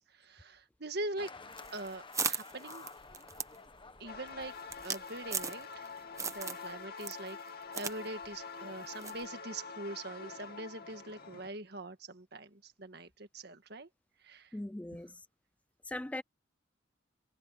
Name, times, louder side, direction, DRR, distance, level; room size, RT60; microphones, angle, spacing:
voice 1, 0.0-1.3 1.7-2.9 4.0-4.5 4.8-5.8 6.2-7.4 7.7-13.9 14.2-14.5, right 2 dB, 55° right, 1.7 m, -43 dB
sound 1, 1.2-6.2, left 4 dB, 25° left, 1.2 m, -52 dB
sound 2, 1.5-5.9 6.2-6.7 7.0-8.0 8.2-8.3 9.0-9.2, right 5 dB, 15° right, 1.0 m, -38 dB
sound 3, 4.1-11.5, left 5 dB, 55° left, 2.7 m, -46 dB
voice 2, 14.5-15.1 15.9-16.2, left 1 dB, 5° left, 0.3 m, -39 dB
head